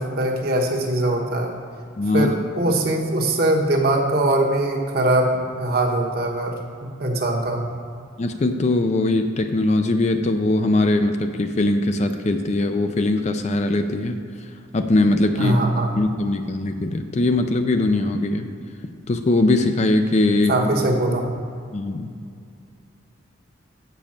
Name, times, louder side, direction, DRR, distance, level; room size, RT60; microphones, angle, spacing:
voice 1, 0.0-1.5 2.1-5.3 5.6-6.5 6.8-7.7 15.4-15.9 20.5-21.3, right 1 dB, 50° right, 0 dB, 1.1 m, -21 dB
voice 2, 2.0-2.4 8.2-15.6 16.0-18.5 19.1-20.6 21.7-22.1, left 2 dB, 35° left, 7 dB, 0.4 m, -21 dB
6.9 x 5.3 x 7.3 m, 2.3 s
head